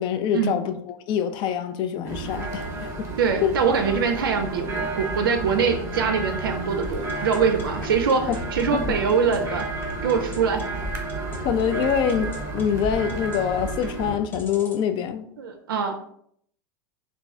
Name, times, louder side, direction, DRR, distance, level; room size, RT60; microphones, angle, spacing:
voice 1, 0.0-3.1 3.4-3.5 8.3-8.4 8.7-9.0 11.4-15.3, left 8 dB, 40° left, 10 dB, 0.4 m, -25 dB
sound 1, 2.0-14.1, right 2 dB, 25° right, 1.0 m, -32 dB
voice 2, 3.2-9.7 10.0-10.7 15.4-15.9, right 6 dB, 75° right, 5 dB, 0.4 m, -23 dB
sound 2, 6.8-14.8, equal, 20° left, 0.8 m, -37 dB
3.0 x 2.6 x 3.5 m, 0.67 s
hypercardioid pair, 90°, 12 cm